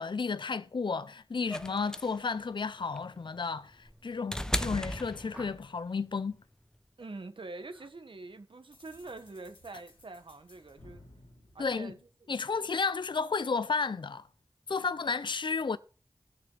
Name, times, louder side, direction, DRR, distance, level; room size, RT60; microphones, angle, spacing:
voice 1, 0.0-6.4 11.6-11.9 12.3-14.3 14.7-15.8, left 4 dB, 65° left, 0.5 m, -32 dB
sound 1, 1.5-5.8 7.0-7.1, equal, 5° left, 0.8 m, -36 dB
sound 2, 5.3-5.9 7.7-8.0 8.3-8.7, right 1 dB, 15° right, 2.7 m, -53 dB
voice 2, 7.0-11.0 11.5-12.0 12.6-12.7, right 3 dB, 75° right, 1.4 m, -45 dB
sound 3, 8.7-12.6, left 1 dB, 85° left, 3.0 m, -58 dB
18.0 x 6.8 x 3.9 m
wide cardioid pair, 45°, 9 cm